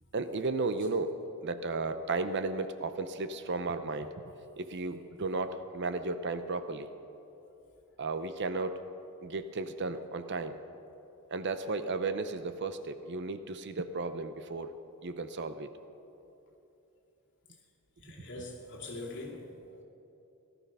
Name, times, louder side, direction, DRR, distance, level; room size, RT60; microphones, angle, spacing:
voice 1, 0.1-4.1 4.6-6.9 8.0-8.8 9.2-10.6 11.3-14.7 15.0-15.7, right 3 dB, 55° right, 10 dB, 0.7 m, -34 dB
voice 2, 18.0-19.8, left 2 dB, 55° left, -3 dB, 2.5 m, -43 dB
17.0 x 13.0 x 5.5 m, 2.9 s
head